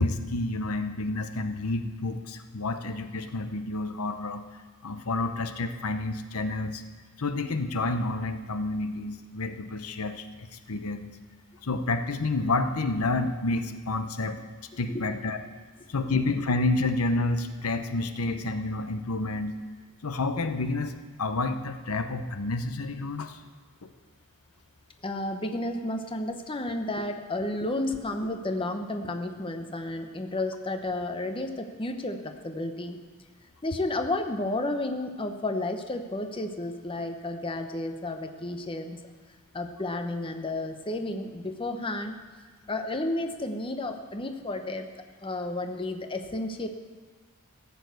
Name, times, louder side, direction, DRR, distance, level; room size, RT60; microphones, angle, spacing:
voice 1, 0.0-4.4 4.8-6.8 7.2-11.1 11.6-14.4 14.8-15.4 15.9-19.5 20.0-23.4 23.8-23.9, left 2 dB, 80° left, 8 dB, 0.9 m, -29 dB
voice 2, 25.0-33.0 33.6-39.0 39.5-42.1 42.7-46.7, left 2 dB, 25° left, 6 dB, 0.8 m, -32 dB
14.5 x 7.1 x 8.1 m, 1.4 s
head